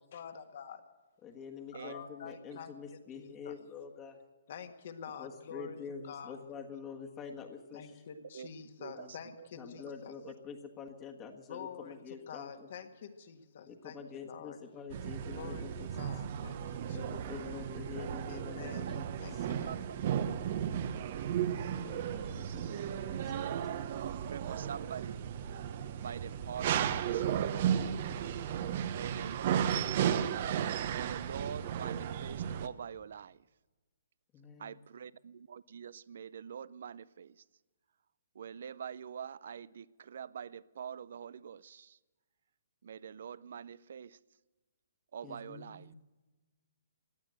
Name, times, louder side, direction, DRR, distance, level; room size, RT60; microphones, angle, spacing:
voice 1, 0.1-0.8 1.7-3.6 4.5-5.8 6.0-6.4 7.7-10.1 11.5-14.6 15.3-15.6 15.9-17.1 18.3-19.8 21.8-22.0, left 7 dB, 55° left, 7 dB, 1.7 m, -47 dB
voice 2, 1.2-4.2 5.2-8.0 8.9-9.1 9.6-12.7 13.7-16.1 16.9-19.0 19.3-19.5 21.7-23.5 34.3-34.8 45.2-45.9, left 6 dB, 20° left, 2 dB, 1.5 m, -47 dB
voice 3, 8.8-9.5 10.2-10.3 18.9-19.0 19.7-20.0 23.1-25.3 26.0-27.5 28.9-29.9 30.9-33.4 34.6-37.4 38.4-42.0 42.8-44.2 45.1-45.9, right 8 dB, 65° right, 21 dB, 0.5 m, -45 dB
sound 1, 14.9-32.7, right 9 dB, 45° right, 1.0 m, -34 dB
17.0 x 10.5 x 7.8 m, 1.2 s
hypercardioid pair, 145°, 0 cm